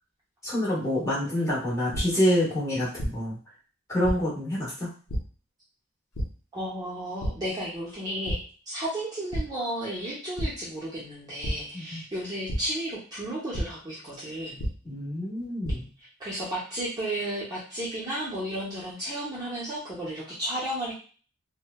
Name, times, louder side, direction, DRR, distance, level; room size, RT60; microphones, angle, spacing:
voice 1, 0.4-3.4 3.9-4.9 11.7-12.0 14.8-15.9, equal, 15° left, -7 dB, 0.9 m, -27 dB
sound 1, 1.9-2.0 3.0-3.1 4.0-4.1 5.1-5.2 6.1-6.2 7.2-7.3 7.8-7.9 8.3-8.4 9.3-9.4 10.4-10.5 11.4-11.5 12.5-12.6 13.5-13.6 14.6-14.7 15.4-15.7, equal, 70° left, 0.7 m, -28 dB
voice 2, 6.5-8.4 8.7-14.6 16.2-20.9, right 1 dB, 15° right, -8 dB, 0.7 m, -33 dB
3.0 x 2.1 x 2.2 m, 0.39 s
head